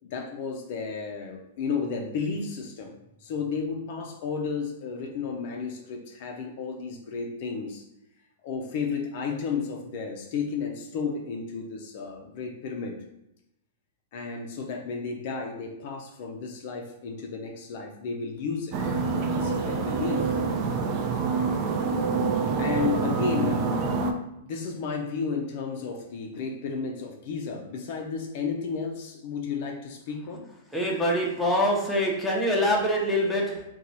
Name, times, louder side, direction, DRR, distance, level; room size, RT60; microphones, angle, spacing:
voice 1, 0.0-7.8 8.4-13.0 14.1-18.8 19.3-20.4 22.6-23.8 24.4-30.5, left 5 dB, 55° left, 2 dB, 0.4 m, -33 dB
sound 1, 18.7-24.1, right 4 dB, 35° right, 0.4 m, -26 dB
voice 2, 30.7-33.6, equal, 5° left, -3 dB, 0.7 m, -24 dB
2.9 x 2.3 x 3.9 m, 0.85 s
hypercardioid pair, 145°, 0 cm